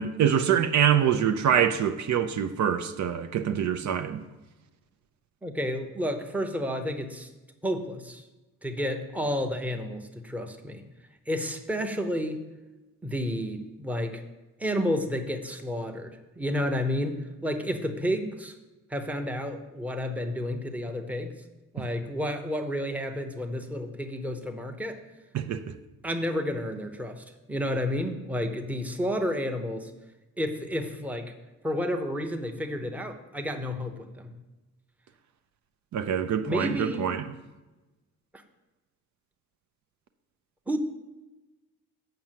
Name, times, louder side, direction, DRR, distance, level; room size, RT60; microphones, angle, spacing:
voice 1, 0.0-4.2 25.3-25.7 35.9-37.3, right 8 dB, 65° right, 0.6 m, -25 dB
voice 2, 5.4-7.3 7.6-8.2 8.6-10.8 11.3-12.4 13.0-14.2 14.6-18.6 18.9-21.3 21.7-25.0 26.0-29.9 30.4-31.3 31.6-34.3 36.5-37.1 40.7-40.8, equal, 5° right, 0.8 m, -31 dB
7.6 x 5.8 x 7.5 m
cardioid pair, 140°, 31 cm